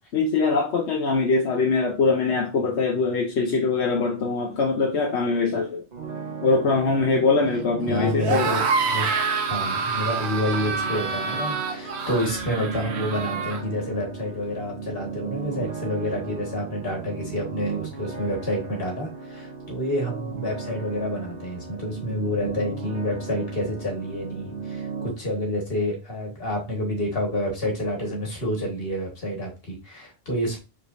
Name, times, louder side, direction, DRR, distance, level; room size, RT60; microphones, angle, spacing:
voice 1, 0.1-5.8 6.4-8.5, left 4 dB, 85° left, 1.1 m, -22 dB
sound 1, 5.9-25.1, right 5 dB, 40° right, 1.1 m, -36 dB
voice 2, 7.9-8.6 8.9-30.6, left 1 dB, 60° left, 1.8 m, -28 dB
sound 2, 8.2-13.6, right 5 dB, 80° right, 1.1 m, -27 dB
5.0 x 3.9 x 2.6 m
omnidirectional pair, 1.1 m